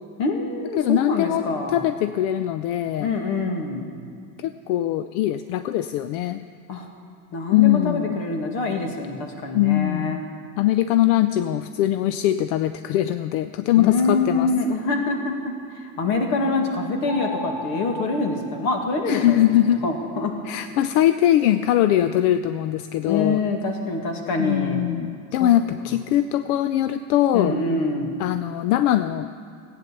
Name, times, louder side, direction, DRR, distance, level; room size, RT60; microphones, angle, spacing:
voice 1, 0.2-1.9 3.0-3.9 6.7-6.9 7.3-10.2 13.8-19.4 19.8-20.3 23.0-24.9 25.4-25.5 27.3-28.2, left 3 dB, 55° left, 3 dB, 2.1 m, -25 dB
voice 2, 0.8-1.4 1.7-3.1 4.4-6.4 7.5-8.2 9.5-10.2 10.6-14.5 19.1-19.8 20.4-23.4 24.4-27.6 28.2-29.3, left 12 dB, 85° left, 11 dB, 0.6 m, -21 dB
sound 1, 17.1-19.5, left 1 dB, 5° left, 1.3 m, -35 dB
15.5 x 9.3 x 6.8 m, 2.3 s
cardioid pair, 165°, 43 cm